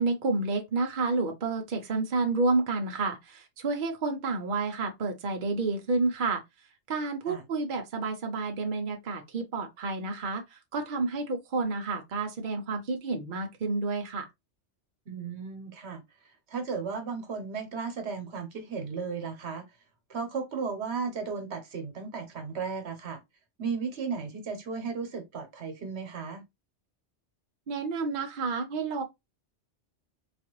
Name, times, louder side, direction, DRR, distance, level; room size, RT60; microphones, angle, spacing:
voice 1, 0.0-6.4 6.9-14.3 27.7-29.0, right 3 dB, 50° right, 0.7 m, -30 dB
voice 2, 15.1-16.0 16.5-19.6 20.1-23.2 23.6-26.4, right 5 dB, 65° right, 1.1 m, -35 dB
4.0 x 2.4 x 2.9 m
omnidirectional pair, 1.2 m